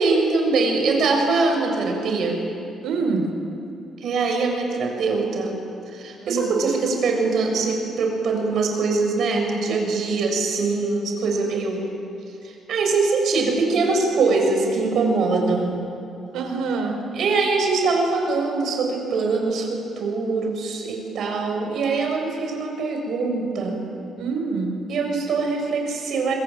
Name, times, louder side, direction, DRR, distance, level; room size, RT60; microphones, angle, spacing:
voice 1, 0.0-2.4 4.0-5.6 5.9-11.8 12.4-15.8 17.1-23.8 24.9-26.3, right 3 dB, 70° right, 2 dB, 7.1 m, -23 dB
voice 2, 2.8-3.3 6.2-6.6 16.3-17.0 24.2-24.8, right 4 dB, 85° right, 4 dB, 4.9 m, -26 dB
26.0 x 22.0 x 9.2 m, 2.8 s
cardioid pair, 90°, 0 cm